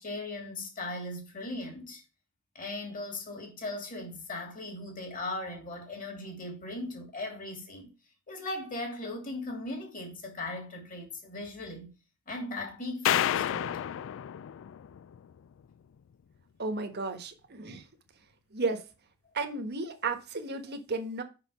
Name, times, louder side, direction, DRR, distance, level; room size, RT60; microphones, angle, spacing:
voice 1, 0.0-2.0 2.5-7.9 8.3-11.9 12.3-14.0, left 2 dB, 40° left, 2.9 m, -38 dB
sound 1, 13.0-15.4, left 11 dB, 65° left, 0.3 m, -30 dB
voice 2, 16.6-17.8 18.5-18.8 19.3-21.2, right 3 dB, 50° right, 1.3 m, -33 dB
5.9 x 5.8 x 5.4 m
head